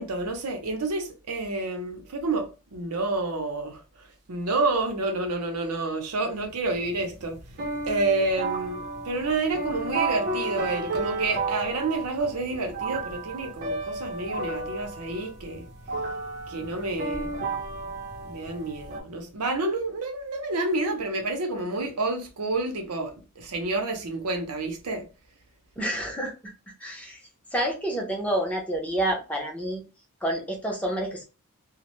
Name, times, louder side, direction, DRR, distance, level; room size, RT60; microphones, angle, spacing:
voice 1, 0.0-3.8 4.3-7.4 7.9-15.7 16.5-17.3 18.2-25.1, right 3 dB, 90° right, 0.7 m, -29 dB
sound 1, 6.4-19.0, right 3 dB, 45° right, 0.6 m, -33 dB
voice 2, 25.8-26.3 26.8-27.2 27.5-29.8 30.2-31.2, right 1 dB, 5° left, 0.6 m, -28 dB
2.1 x 2.1 x 3.0 m
head